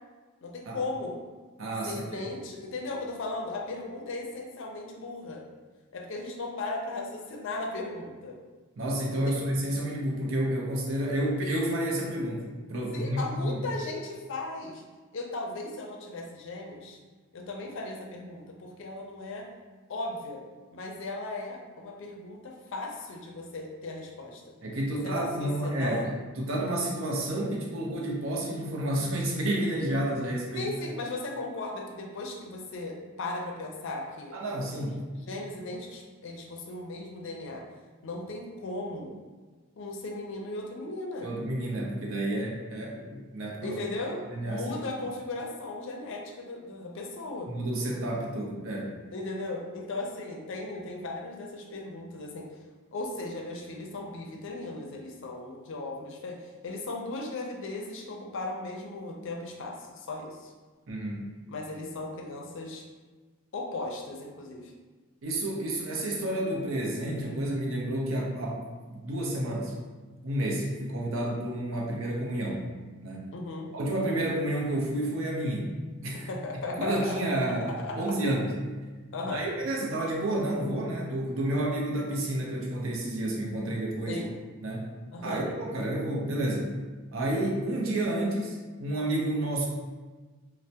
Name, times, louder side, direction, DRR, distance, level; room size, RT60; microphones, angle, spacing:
voice 1, 0.4-1.2 1.8-5.4 5.9-8.4 9.1-9.4 12.9-14.8 15.1-17.0 17.3-19.5 19.9-20.4 20.7-24.4 25.0-26.1 30.5-34.4 35.2-37.6 38.0-39.1 39.8-41.3 43.5-47.5 49.1-52.5 52.9-60.5 61.5-62.8 63.5-64.7 73.3-73.7 76.1-77.3 77.6-78.1 79.1-79.5 84.1-84.3 85.1-85.4, left 2 dB, 60° left, 1 dB, 0.4 m, -37 dB
voice 2, 1.6-2.2 8.8-12.4 12.7-13.6 24.6-30.7 34.3-35.0 41.2-43.8 44.3-44.6 47.5-48.9 60.9-61.2 65.2-68.6 68.9-69.8 70.2-72.6 73.0-73.3 73.7-75.7 76.0-76.3 76.8-78.5 79.3-84.2 84.6-84.9 85.2-86.7 87.1-89.7, right 1 dB, 65° right, -1 dB, 0.6 m, -30 dB
3.2 x 2.0 x 2.7 m, 1.3 s
head